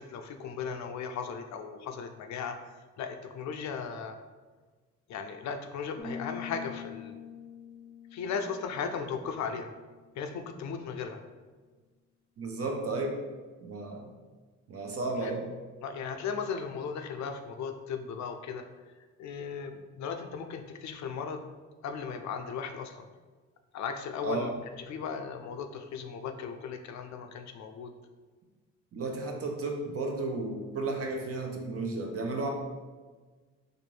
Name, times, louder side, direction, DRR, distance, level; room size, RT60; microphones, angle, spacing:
voice 1, 0.0-4.2 5.1-7.2 8.1-9.7 10.2-11.2 15.2-15.3 15.8-18.6 19.2-21.5 21.8-23.1 23.7-24.5 24.8-27.9, left 6 dB, 65° left, 6 dB, 0.5 m, -37 dB
sound 1, 6.0-9.7, left 6 dB, 5° left, 0.6 m, -44 dB
voice 2, 12.4-13.1 13.6-14.1 14.7-15.5 24.2-24.5 28.9-32.5, right 3 dB, 50° right, 1 dB, 0.8 m, -33 dB
4.2 x 2.6 x 3.2 m, 1.4 s
cardioid pair, 90°, 30 cm